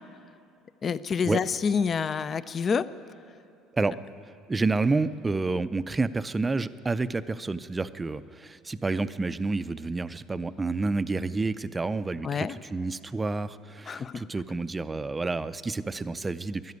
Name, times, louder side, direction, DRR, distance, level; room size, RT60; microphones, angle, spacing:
voice 1, 0.8-2.9 12.2-12.6 13.9-14.2, left 6 dB, 35° left, 16 dB, 0.4 m, -27 dB
voice 2, 4.3-16.7, right 3 dB, 20° right, 14 dB, 0.5 m, -29 dB
13.0 x 10.5 x 9.5 m, 2.5 s
supercardioid pair, 100°, 0 cm